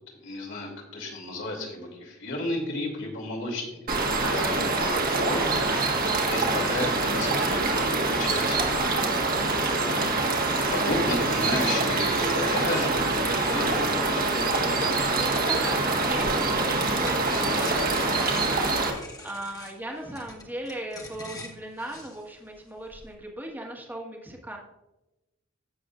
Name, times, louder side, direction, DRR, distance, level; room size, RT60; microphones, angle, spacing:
voice 1, 0.1-3.9 4.3-5.4 6.3-8.7 8.9-9.3 10.4-14.8, left 1 dB, 65° left, 0 dB, 2.8 m, -33 dB
sound 1, 3.9-18.9, right 3 dB, 45° right, 1.5 m, -25 dB
voice 2, 4.1-4.4 5.5-5.9 8.0-8.4 13.8-24.6, right 1 dB, 10° right, 0 dB, 1.5 m, -38 dB
sound 2, 17.0-23.1, left 2 dB, 15° left, 1.3 m, -44 dB
16.0 x 6.8 x 2.5 m, 1.0 s
head